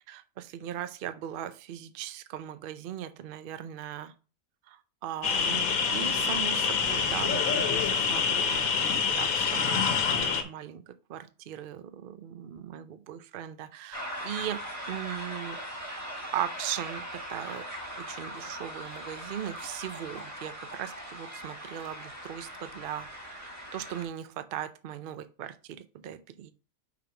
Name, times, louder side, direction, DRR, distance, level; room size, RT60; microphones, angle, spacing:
voice 1, 0.1-4.1 4.7-10.8 11.1-15.6 16.3-17.6 18.0-26.5, right 11 dB, 65° right, 10 dB, 0.5 m, -39 dB
sound 1, 5.2-10.4, left 6 dB, 75° left, 1.3 m, -26 dB
sound 2, 13.9-24.0, equal, 10° right, 1.5 m, -40 dB
5.8 x 3.4 x 5.7 m, 0.35 s
omnidirectional pair, 1.5 m